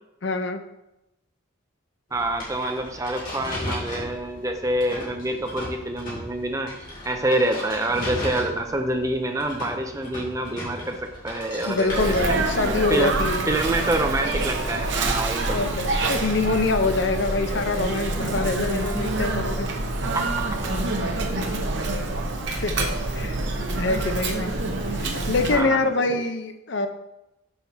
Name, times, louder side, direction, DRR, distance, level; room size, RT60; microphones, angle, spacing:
voice 1, 0.2-0.6 11.6-13.6 15.5-19.7 22.5-23.4 23.8-24.5 24.9-26.9, left 3 dB, 65° left, 7 dB, 0.6 m, -25 dB
sound 1, 2.1-12.6, left 1 dB, 45° left, 2.3 m, -36 dB
voice 2, 2.1-6.7 7.0-12.1 12.5-13.1 13.5-15.6 20.1-20.4 25.5-26.2, right 1 dB, 15° right, 5 dB, 0.5 m, -26 dB
Sneeze, 11.9-25.6, right 2 dB, 65° right, 0.8 m, -26 dB
5.7 x 4.3 x 5.6 m, 0.91 s
head